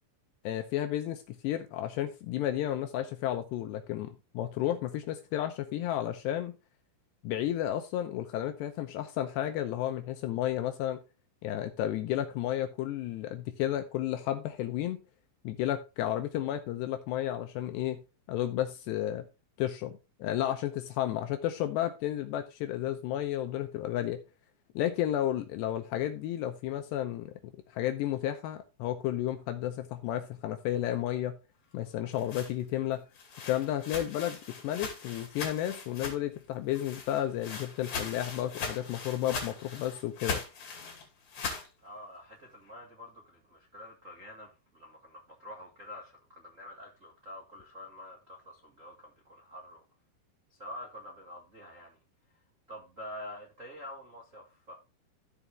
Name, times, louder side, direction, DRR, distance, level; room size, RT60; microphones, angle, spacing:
voice 1, 0.4-6.5 7.2-11.0 11.4-15.0 15.4-18.0 18.3-19.3 19.6-24.2 24.8-31.4 31.7-33.0 33.5-40.4, left 12 dB, 80° left, 2.7 m, -32 dB
sound 1, 31.9-36.4 36.7-41.7, left 4 dB, 45° left, 3.4 m, -40 dB
voice 2, 41.8-49.8 50.5-52.0 52.7-54.7, left 1 dB, 65° right, 0.7 m, -47 dB
14.5 x 5.1 x 3.4 m
omnidirectional pair, 5.3 m